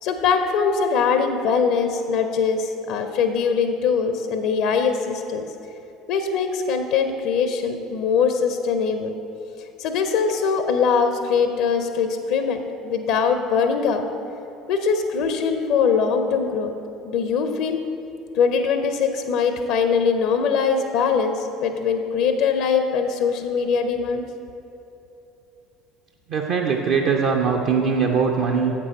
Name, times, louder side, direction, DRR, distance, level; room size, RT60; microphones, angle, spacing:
voice 1, 0.0-5.4 6.1-9.1 9.8-14.0 14.7-16.7 17.0-17.8 18.3-24.2, left 6 dB, 55° left, 7 dB, 0.5 m, -22 dB
voice 2, 26.3-28.7, right 5 dB, 50° right, 1 dB, 0.5 m, -21 dB
7.8 x 5.9 x 4.4 m, 2.9 s
figure-of-eight pair, 60°, 0 cm